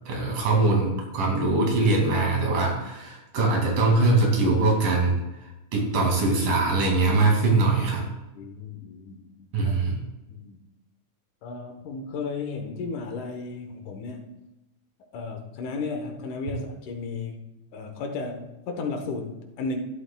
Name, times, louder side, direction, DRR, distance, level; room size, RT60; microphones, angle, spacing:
voice 1, 0.1-5.2 5.7-8.1 9.5-10.0, right 3 dB, 80° right, 0 dB, 4.0 m, -22 dB
voice 2, 8.4-9.7 10.3-10.6 11.4-14.4 15.1-17.5 17.7-19.8, left 4 dB, 75° left, 4 dB, 2.5 m, -34 dB
14.5 x 12.0 x 2.3 m, 0.98 s
omnidirectional pair, 3.7 m